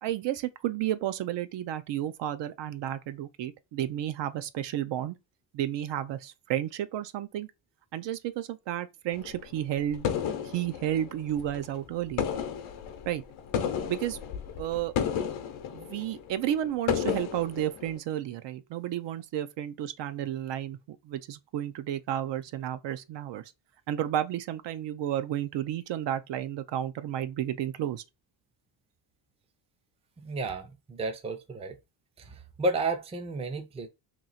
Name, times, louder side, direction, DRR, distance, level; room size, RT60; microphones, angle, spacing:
voice 1, 0.0-5.2 5.5-7.5 7.9-10.1 10.4-12.2 13.1-13.2 13.9-14.2 14.6-14.9 15.7-20.8 21.0-23.5 23.9-28.0, right 11 dB, 65° right, 0.5 m, -32 dB
sound 1, 9.1-11.8 12.1-18.0, left 8 dB, 85° left, 0.8 m, -33 dB
voice 2, 30.2-31.7 32.2-33.9, right 2 dB, 15° right, 0.4 m, -32 dB
3.0 x 2.7 x 4.0 m
cardioid pair, 155°, 47 cm